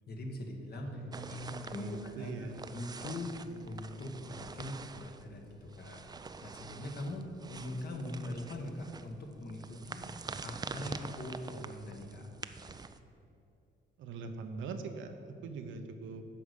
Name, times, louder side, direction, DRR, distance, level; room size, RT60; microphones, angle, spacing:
voice 1, 0.1-1.4 1.6-6.1 6.4-12.3, left 1 dB, 50° left, 2 dB, 1.4 m, -42 dB
voice 2, 0.8-2.6 14.0-16.2, right 3 dB, 80° right, 6 dB, 0.8 m, -42 dB
sound 1, 1.1-13.0, right 4 dB, 20° right, 0.4 m, -46 dB
8.6 x 5.0 x 6.7 m, 2.6 s
cardioid pair, 90°, 20 cm